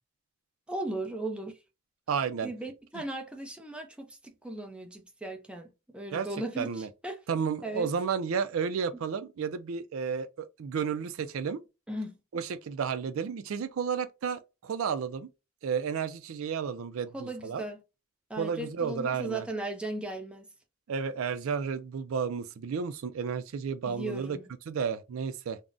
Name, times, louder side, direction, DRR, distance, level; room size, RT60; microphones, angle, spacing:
voice 1, 0.7-1.6 2.4-7.2 7.6-7.9 11.9-12.2 17.1-17.8 18.3-20.5 23.9-24.5, right 2 dB, 5° right, 0.5 m, -37 dB
voice 2, 2.1-2.5 2.9-3.0 6.1-6.3 6.6-6.9 7.3-11.6 12.3-15.3 15.6-17.6 18.4-19.4 20.9-24.4 24.7-25.6, right 6 dB, 75° right, 0.4 m, -32 dB
3.6 x 2.0 x 2.4 m
head